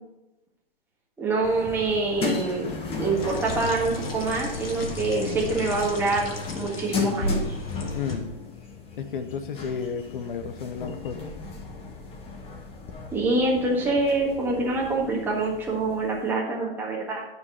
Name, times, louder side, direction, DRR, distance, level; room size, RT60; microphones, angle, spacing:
voice 1, 1.2-2.7 3.0-7.4 13.1-17.2, right 3 dB, 5° right, -4 dB, 1.6 m, -25 dB
sound 1, 1.4-16.2, left 5 dB, 20° left, 1.3 m, -36 dB
sound 2, 3.2-8.2, left 1 dB, 75° left, 1.8 m, -34 dB
voice 2, 7.9-8.3 9.0-11.2, left 6 dB, 60° left, 8 dB, 0.8 m, -32 dB
9.4 x 4.6 x 5.6 m, 0.98 s
hypercardioid pair, 125°, 29 cm